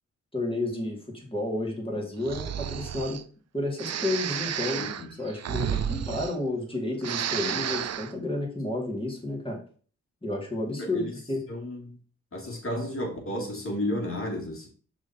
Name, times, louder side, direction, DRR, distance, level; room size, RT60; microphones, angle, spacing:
voice 1, 0.3-3.2 3.5-4.9 5.2-9.6 10.2-11.4, left 2 dB, 20° left, 2.6 m, -31 dB
Breathing, 2.2-3.2 3.8-6.7 7.0-8.1, right 9 dB, 60° right, 0.5 m, -32 dB
voice 2, 4.8-5.1 10.8-11.2 11.5-12.0 12.3-14.7, left 1 dB, 45° left, 2.7 m, -32 dB
6.2 x 3.8 x 4.4 m
cardioid pair, 50°, 29 cm